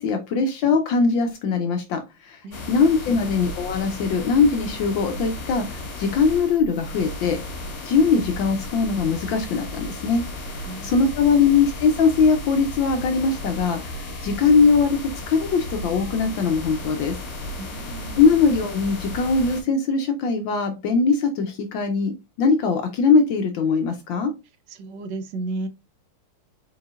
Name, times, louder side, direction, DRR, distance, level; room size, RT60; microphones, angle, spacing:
voice 1, 0.0-2.4 2.7-7.4 7.8-10.2 10.8-13.9 14.2-15.0 15.3-17.2 18.2-22.1 22.4-24.3, left 5 dB, 70° left, 6 dB, 1.2 m, -21 dB
voice 2, 2.4-2.8 3.1-3.2 10.6-11.5 17.6-18.3 24.7-25.7, right 3 dB, 70° right, 9 dB, 1.1 m, -34 dB
sound 1, 2.5-19.6, left 2 dB, 55° left, 2.2 m, -34 dB
4.8 x 4.6 x 2.4 m, 0.26 s
omnidirectional pair, 2.4 m